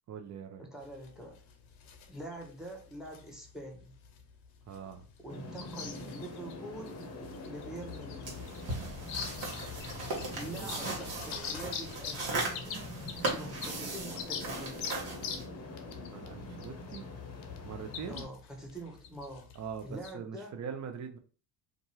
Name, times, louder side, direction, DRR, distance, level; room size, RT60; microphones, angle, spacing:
voice 1, 0.1-0.7 4.7-5.0 10.5-11.7 16.1-17.1 17.6-18.3 19.5-21.2, right 7 dB, 35° right, 6 dB, 0.6 m, -43 dB
voice 2, 0.6-1.4 2.1-3.9 5.2-7.1 7.4-8.4 10.3-12.9 13.2-14.9 18.1-19.5 19.8-20.6, right 1 dB, ahead, 2 dB, 0.9 m, -45 dB
sound 1, 0.8-20.1, left 7 dB, 70° left, 0.8 m, -45 dB
sound 2, 5.3-18.3, left 2 dB, 30° left, 0.8 m, -44 dB
sound 3, 8.2-15.4, right 2 dB, 60° right, 1.3 m, -38 dB
2.6 x 2.4 x 3.0 m, 0.38 s
supercardioid pair, 65°, 49 cm